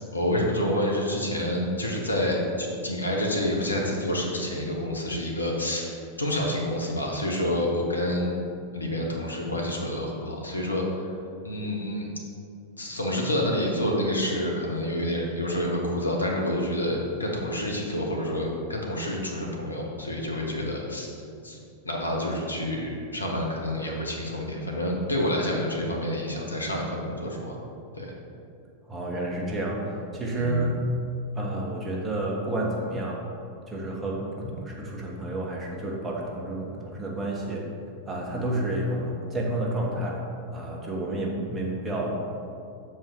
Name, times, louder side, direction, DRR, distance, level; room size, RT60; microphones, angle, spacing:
voice 1, 0.1-8.3 8.7-11.0 11.4-12.1 12.8-21.1 21.4-21.6 21.8-27.6 27.9-28.1 30.3-30.7, left 1 dB, 80° left, -1 dB, 1.1 m, -28 dB
voice 2, 28.9-30.8 31.3-33.2 33.7-37.6 38.1-40.3 40.5-42.1, right 1 dB, 20° right, -2 dB, 1.4 m, -30 dB
7.5 x 4.7 x 4.7 m, 2.4 s
figure-of-eight pair, 90°, 0 cm